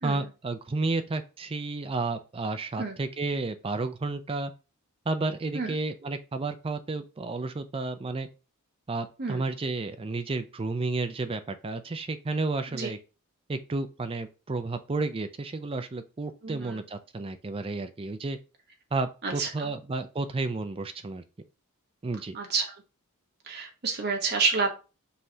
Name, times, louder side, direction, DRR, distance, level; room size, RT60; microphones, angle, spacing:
voice 1, 0.0-4.5 5.1-8.3 8.9-13.0 13.5-18.4 18.9-21.2 22.0-22.4, right 3 dB, 25° right, 9 dB, 0.4 m, -31 dB
voice 2, 16.4-16.8 19.2-19.7 22.3-22.7 23.4-24.7, right 4 dB, 50° right, 3 dB, 1.1 m, -29 dB
5.5 x 3.1 x 2.7 m, 0.31 s
head